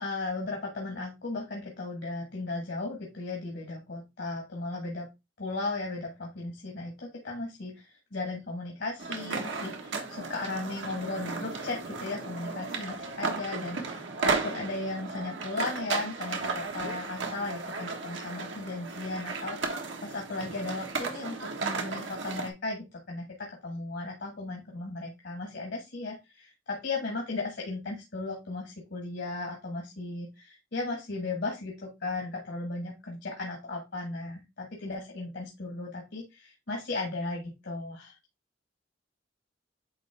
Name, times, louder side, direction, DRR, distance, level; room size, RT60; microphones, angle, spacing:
voice 1, 0.0-5.1 5.4-19.6 20.0-38.2, left 3 dB, 65° left, 0 dB, 1.5 m, -36 dB
sound 1, 9.0-22.5, right 4 dB, 90° right, 1.3 m, -35 dB
8.8 x 3.1 x 3.4 m, 0.23 s
head